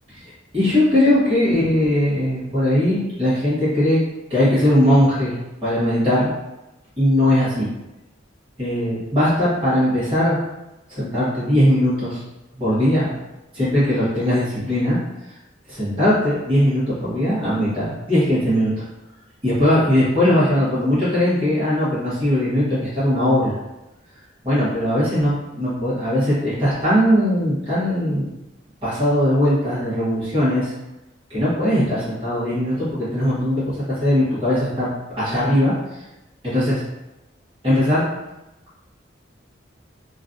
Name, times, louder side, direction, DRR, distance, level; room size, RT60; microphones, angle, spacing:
voice 1, 0.5-4.0 4.3-6.3 7.0-7.7 8.6-10.4 10.9-12.2 12.6-13.1 13.5-15.0 15.7-18.7 19.4-23.5 24.4-28.3 28.8-30.7 31.3-34.9 35.2-35.7 36.4-36.8 37.6-38.0, left 1 dB, 30° right, -11 dB, 1.3 m, -19 dB
3.0 x 2.6 x 2.5 m, 0.97 s
head